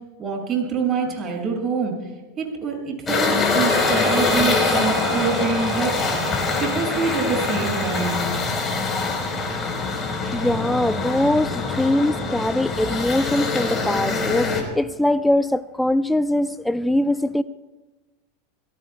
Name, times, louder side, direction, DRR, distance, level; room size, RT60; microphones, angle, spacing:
voice 1, 0.2-2.0 2.4-5.9 6.6-8.3, right 5 dB, 35° right, 1 dB, 6.3 m, -25 dB
sound 1, 3.1-14.6, left 4 dB, 25° left, 4.0 m, -24 dB
Brass instrument, 3.6-8.2, right 10 dB, 60° right, 2.1 m, -33 dB
voice 2, 10.3-17.4, left 1 dB, 5° left, 15 dB, 0.5 m, -22 dB
28.5 x 18.0 x 2.2 m, 1.2 s
hypercardioid pair, 90°, 0 cm